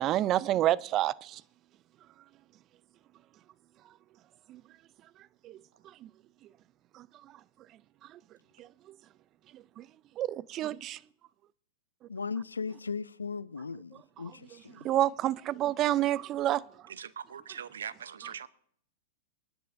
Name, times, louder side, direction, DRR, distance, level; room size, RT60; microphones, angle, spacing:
voice 1, 0.0-1.4 4.5-4.6 5.4-5.6 6.0-6.1 6.9-7.1 8.1-8.2 8.6-8.7 9.5-9.9 10.2-11.0 14.8-16.6, right 13 dB, 35° right, 0.5 m, -29 dB
voice 2, 12.1-14.9, left 5 dB, 85° left, 0.4 m, -37 dB
voice 3, 16.9-18.5, right 8 dB, 70° right, 0.7 m, -41 dB
26.0 x 10.5 x 2.6 m
figure-of-eight pair, 100°, 0 cm